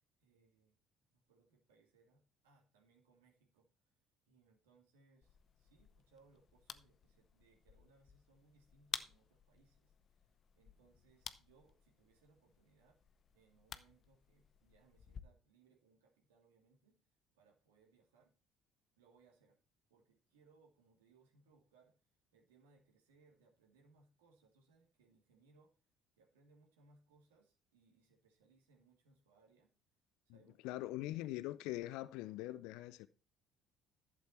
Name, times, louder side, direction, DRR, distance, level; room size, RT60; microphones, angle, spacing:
voice 1, 0.2-0.8 1.1-3.7 4.3-13.0 13.3-17.0 17.3-18.3 19.0-19.6 19.9-25.8 26.2-29.7 30.2-30.8, right 4 dB, 80° right, 2.8 m, -71 dB
sound 1, 5.2-15.2, left 7 dB, 45° left, 0.8 m, -53 dB
voice 2, 30.3-33.1, left 16 dB, 70° left, 0.5 m, -43 dB
11.5 x 7.5 x 4.4 m
hypercardioid pair, 55°, 0 cm